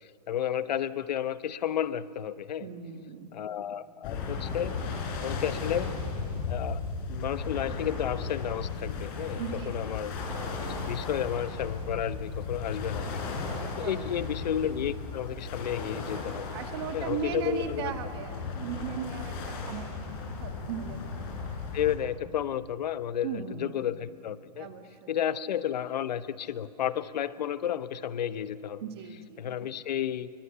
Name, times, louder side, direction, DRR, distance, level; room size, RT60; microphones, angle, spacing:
voice 1, 0.0-2.7 3.3-4.8 5.2-6.0 6.5-6.8 7.1-10.1 10.6-13.2 13.8-16.5 16.9-17.9 21.7-24.7 25.1-28.8 29.4-30.3, left 10 dB, 80° left, 14 dB, 1.0 m, -32 dB
voice 2, 2.6-3.3 9.4-10.1 13.8-14.4 16.5-21.0 21.3-21.5 23.2-23.8 24.6-25.1 28.8-29.7, right 8 dB, 40° right, 7 dB, 1.8 m, -38 dB
sound 1, 4.0-22.0, left 4 dB, 35° left, 4.2 m, -35 dB
29.5 x 23.0 x 6.9 m, 2.4 s
supercardioid pair, 180°, 21 cm